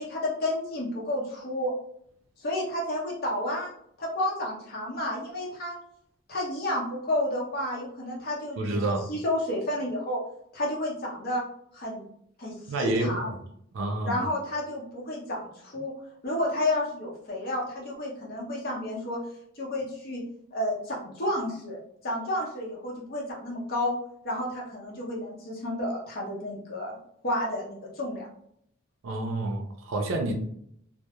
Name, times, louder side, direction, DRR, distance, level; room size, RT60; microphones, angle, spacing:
voice 1, 0.0-1.7 2.4-3.7 4.0-5.7 6.3-8.8 9.1-10.2 10.5-11.4 11.7-12.0 12.4-13.3 14.0-15.9 16.2-19.2 19.6-20.2 20.5-21.8 22.0-24.0 24.2-27.0 27.2-28.3, left 1 dB, 45° left, -3 dB, 0.8 m, -31 dB
voice 2, 8.6-9.1 12.7-13.3 13.7-14.3 29.0-30.3, right 2 dB, 70° right, 3 dB, 0.4 m, -29 dB
2.2 x 2.0 x 2.9 m, 0.67 s
head